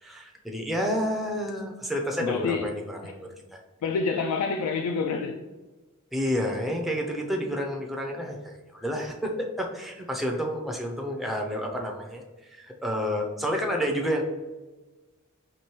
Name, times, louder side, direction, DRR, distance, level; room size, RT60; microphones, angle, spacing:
voice 1, 0.0-3.6 6.1-14.2, equal, ahead, 0.4 m, -30 dB
voice 2, 2.2-2.7 3.0-3.1 3.8-5.4, left 5 dB, 75° left, 0.3 m, -27 dB
4.5 x 3.0 x 3.0 m
head